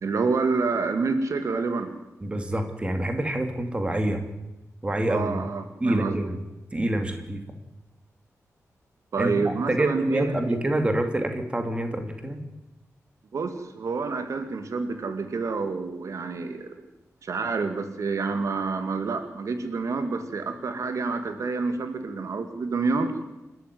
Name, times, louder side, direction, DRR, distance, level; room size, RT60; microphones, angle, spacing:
voice 1, 0.0-1.9 5.1-6.2 9.1-10.6 13.3-16.8 17.2-23.1, right 4 dB, 70° right, 8 dB, 2.3 m, -28 dB
voice 2, 2.2-4.2 4.8-5.4 5.8-6.4 6.7-7.4 9.2-12.4, right 1 dB, 20° right, 6 dB, 2.9 m, -27 dB
28.5 x 13.5 x 9.6 m, 0.97 s
wide cardioid pair, 155°, 6 cm